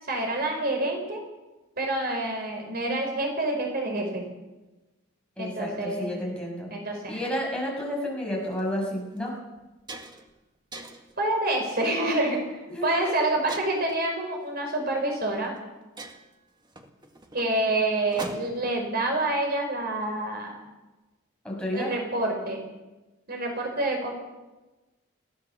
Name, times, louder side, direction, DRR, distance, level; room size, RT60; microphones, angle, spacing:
voice 1, 0.0-1.2 1.8-4.2 5.4-6.1 6.7-7.2 11.2-15.5 17.3-20.6 21.7-22.6 23.3-24.1, right 2 dB, 50° right, 2 dB, 4.8 m, -27 dB
voice 2, 5.4-6.7 7.1-9.3 12.7-13.3 21.4-21.9, left 1 dB, 5° left, -2 dB, 6.7 m, -31 dB
sound 1, 8.4-8.6 9.2-9.3 9.6-10.3 10.7-11.2 11.8-12.1 13.5-14.0 15.1-15.2 15.6-15.7 16.0-18.7, right 2 dB, 20° right, 1.9 m, -41 dB
22.5 x 17.0 x 7.1 m, 1.1 s
head